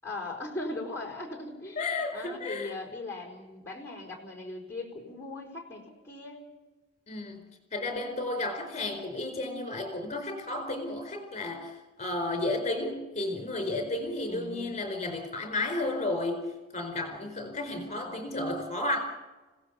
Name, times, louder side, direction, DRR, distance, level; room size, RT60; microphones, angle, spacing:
voice 1, 0.0-6.4 14.3-14.7 17.7-18.2, left 2 dB, 15° left, -1 dB, 4.6 m, -39 dB
voice 2, 1.8-2.7 7.1-16.4 16.7-19.0, left 2 dB, 35° left, 5 dB, 4.4 m, -33 dB
29.5 x 17.5 x 7.2 m, 1.2 s
head